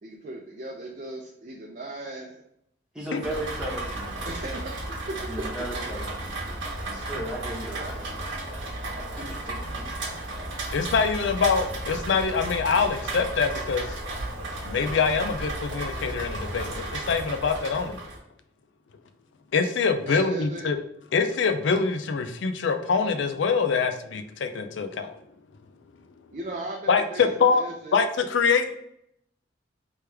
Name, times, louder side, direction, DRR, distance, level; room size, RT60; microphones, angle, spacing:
voice 1, 0.0-2.4 3.3-3.4 4.2-5.3 6.6-6.8 20.0-20.6 26.3-28.0, right 1 dB, 40° right, -2 dB, 0.5 m, -37 dB
voice 2, 2.9-4.4 5.3-8.3 9.0-9.9, right 1 dB, 5° right, -6 dB, 1.1 m, -36 dB
Rain, 3.2-18.2, right 2 dB, 80° right, 1.0 m, -34 dB
voice 3, 10.7-14.0 14.6-18.0 19.5-20.8 21.1-25.2 26.9-27.6 27.9-28.7, left 5 dB, 80° left, 8 dB, 0.4 m, -24 dB
3.3 x 3.1 x 3.3 m, 0.74 s
head